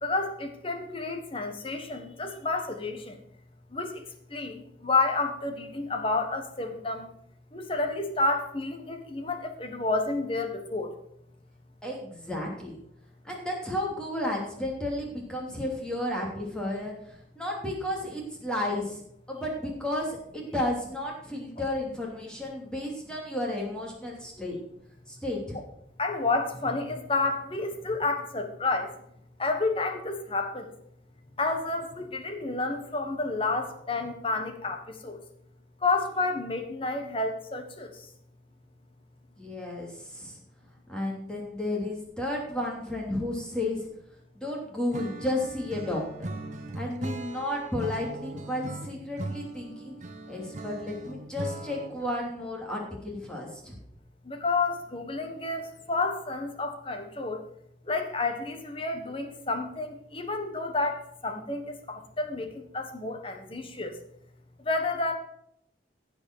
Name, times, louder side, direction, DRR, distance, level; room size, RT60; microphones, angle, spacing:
voice 1, 0.0-3.2 3.7-4.0 4.3-7.1 7.5-10.9 24.3-24.7 26.0-28.9 29.4-30.7 31.4-35.2 35.8-38.1 54.2-57.4 57.9-64.0 64.6-65.1, left 3 dB, 30° left, 5 dB, 1.5 m, -30 dB
voice 2, 11.8-12.8 13.2-16.9 17.3-19.0 19.3-24.6 25.1-25.6 39.4-40.4 40.9-43.9 44.3-46.3 46.7-49.9 50.3-53.8, left 1 dB, 5° left, -2 dB, 2.9 m, -32 dB
Acoustic guitar / Strum, 44.9-52.1, right 2 dB, 40° right, 1.1 m, -39 dB
15.5 x 5.3 x 6.3 m, 0.73 s
head